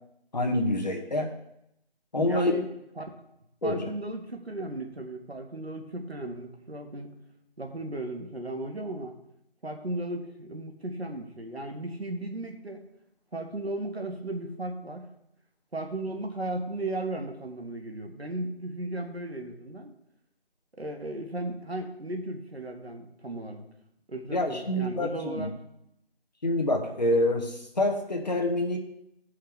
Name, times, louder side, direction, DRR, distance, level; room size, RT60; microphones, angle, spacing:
voice 1, 0.3-1.3 2.1-2.5 3.6-3.9 24.3-25.5 26.4-28.8, left 1 dB, 45° left, 2 dB, 1.3 m, -27 dB
voice 2, 2.2-2.7 3.0-3.1 3.6-7.2 7.6-9.1 9.6-12.8 13.3-15.1 15.7-19.9 20.7-23.6 24.1-25.5, right 1 dB, 85° right, 3 dB, 1.6 m, -35 dB
16.0 x 5.7 x 3.3 m, 0.80 s
figure-of-eight pair, 165°, 30 cm